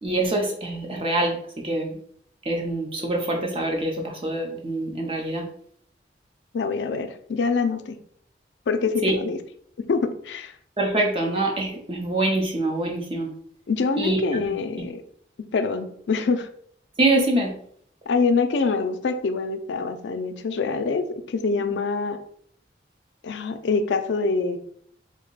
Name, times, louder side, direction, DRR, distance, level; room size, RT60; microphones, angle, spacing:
voice 1, 0.0-2.0 2.5-5.5 9.0-9.2 10.8-13.3 14.0-14.5 17.0-17.5 21.6-21.7, right 2 dB, 30° right, 1 dB, 0.7 m, -25 dB
voice 2, 6.5-8.0 8.7-9.4 9.9-10.5 13.7-15.0 15.5-16.5 18.1-22.2 23.2-24.6, left 4 dB, 90° left, 9 dB, 0.4 m, -25 dB
3.6 x 2.2 x 3.9 m, 0.63 s
head